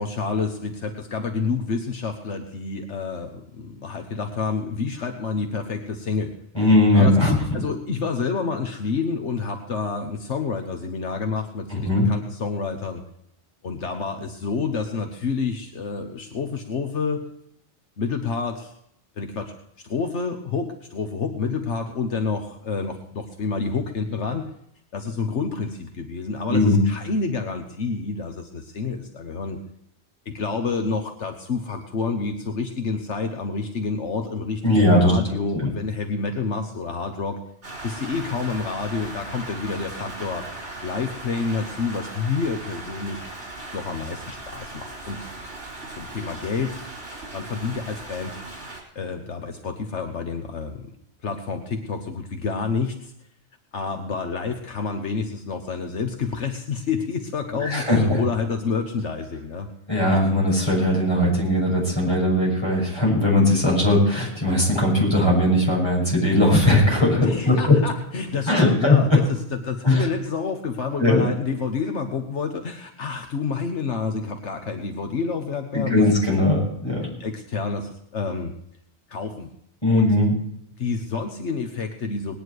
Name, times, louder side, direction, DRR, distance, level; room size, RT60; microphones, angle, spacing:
voice 1, 0.0-6.3 6.9-13.0 13.6-17.2 18.0-18.7 19.2-19.5 19.8-24.5 24.9-29.6 30.2-37.4 37.8-40.5 40.8-43.2 43.7-45.2 46.0-46.8 47.3-48.4 48.9-50.9 51.2-53.1 53.7-59.7 67.2-76.0 76.4-76.5 77.2-78.5 79.1-79.5 79.9-80.1 80.8-82.4, left 4 dB, 75° left, 5 dB, 1.5 m, -28 dB
voice 2, 6.5-7.4 11.7-12.0 26.5-26.8 34.6-35.2 57.6-58.2 59.9-67.8 68.5-69.2 69.8-70.1 71.0-71.2 75.7-77.1 79.8-80.3, left 1 dB, 20° left, -3 dB, 6.6 m, -19 dB
Rain, 37.6-48.8, right 2 dB, 70° right, 4.4 m, -38 dB
19.5 x 10.5 x 4.7 m, 0.73 s
omnidirectional pair, 1.2 m